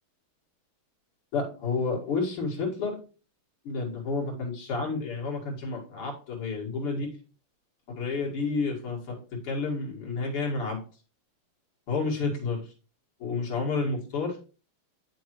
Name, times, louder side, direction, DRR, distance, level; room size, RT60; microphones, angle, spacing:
voice 1, 1.3-3.0 3.6-7.1 8.0-9.2 9.4-10.8 11.9-12.6 13.2-14.4, left 4 dB, 90° left, -1 dB, 3.1 m, -30 dB
9.0 x 7.0 x 3.1 m, 0.36 s
omnidirectional pair, 2.4 m